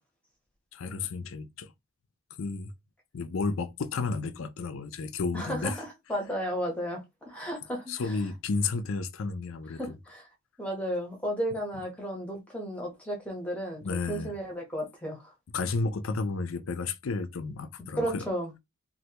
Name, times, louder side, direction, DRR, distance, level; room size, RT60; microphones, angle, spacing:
voice 1, 0.7-1.7 2.4-2.7 3.1-5.8 7.9-10.0 13.8-14.3 15.5-18.3, left 4 dB, 70° left, 0.5 m, -32 dB
voice 2, 5.3-8.2 9.8-10.3 10.6-15.3 18.0-18.5, equal, 5° left, 0.9 m, -34 dB
3.2 x 2.6 x 2.9 m
head